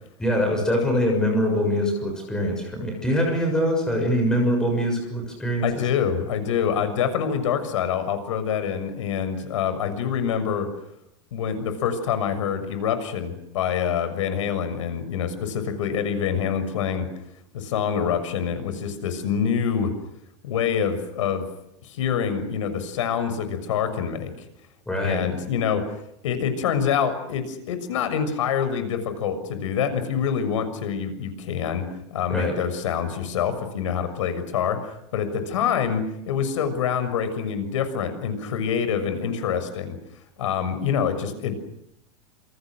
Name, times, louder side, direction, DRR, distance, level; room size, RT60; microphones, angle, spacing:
voice 1, 0.2-5.9 24.9-25.3 32.3-32.6, equal, 5° left, 2 dB, 6.7 m, -23 dB
voice 2, 5.6-10.7 11.3-17.1 17.5-19.9 20.4-21.4 21.8-24.5 25.0-25.8 26.2-40.0 40.4-41.6, left 7 dB, 90° left, 10 dB, 6.6 m, -26 dB
28.5 x 28.0 x 6.5 m, 0.78 s
supercardioid pair, 180°, 16 cm